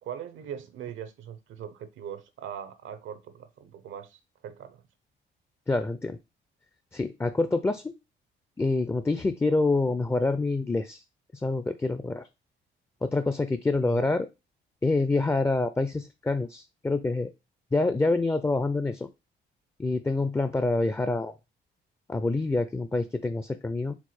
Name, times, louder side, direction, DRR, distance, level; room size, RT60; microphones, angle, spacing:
voice 1, 0.0-4.8 9.8-10.0 13.8-14.1, right 9 dB, 80° right, 0.7 m, -41 dB
voice 2, 5.7-6.2 6.9-7.9 8.6-11.0 11.3-12.3 13.0-14.3 14.8-17.3 17.7-19.1 19.8-21.3 22.1-24.0, left 3 dB, 10° left, 0.4 m, -26 dB
4.6 x 2.2 x 4.2 m
cardioid pair, 90°, 20 cm